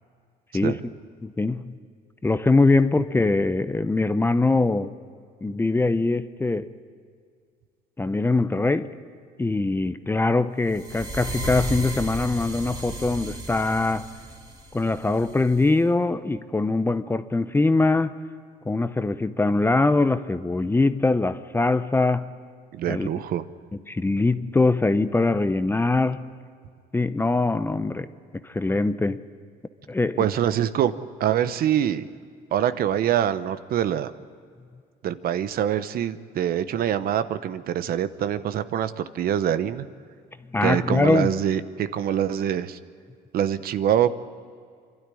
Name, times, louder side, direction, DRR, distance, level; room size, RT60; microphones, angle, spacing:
voice 1, 1.2-1.8 2.2-4.9 5.4-6.7 8.0-8.9 9.4-14.1 14.7-18.1 18.7-22.3 22.9-23.1 23.9-26.3 26.9-28.1 28.4-29.2 29.9-30.3 40.5-41.3, left 3 dB, 15° left, 12 dB, 0.7 m, -22 dB
sound 1, 10.7-15.7, right 1 dB, 25° right, 3.4 m, -34 dB
voice 2, 22.7-23.4 30.2-30.9 31.2-32.1 32.5-34.1 35.0-39.9 40.6-42.8 43.3-44.1, right 10 dB, 60° right, 13 dB, 0.9 m, -24 dB
26.5 x 12.5 x 10.0 m, 2.1 s
cardioid pair, 110°, 17 cm